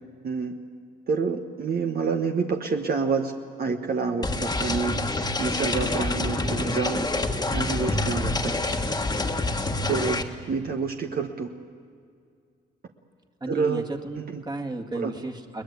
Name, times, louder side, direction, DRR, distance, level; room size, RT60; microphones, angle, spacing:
voice 1, 1.1-3.3 3.6-4.9 5.4-7.1 7.5-8.5 9.9-11.5 13.5-13.8 14.2-14.4 14.9-15.1, right 5 dB, 50° right, 3 dB, 1.3 m, -27 dB
sound 1, 4.2-10.2, left 2 dB, 20° left, 1.6 m, -27 dB
voice 2, 13.4-15.6, right 2 dB, 20° right, 4 dB, 2.0 m, -33 dB
22.0 x 20.0 x 8.3 m, 2.2 s
cardioid pair, 90°, 20 cm